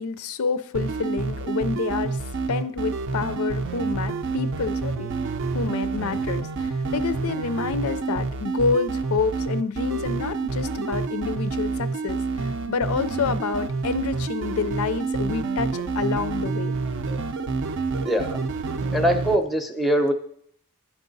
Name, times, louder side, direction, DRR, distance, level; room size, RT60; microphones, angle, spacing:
voice 1, 0.0-2.2 2.5-5.1 5.5-16.7, left 5 dB, 70° left, 12 dB, 0.4 m, -28 dB
sound 1, 0.7-19.4, right 4 dB, 60° right, 0.5 m, -28 dB
voice 2, 18.0-18.4 18.9-20.1, equal, ahead, 6 dB, 0.5 m, -22 dB
10.5 x 4.7 x 4.0 m, 0.66 s
head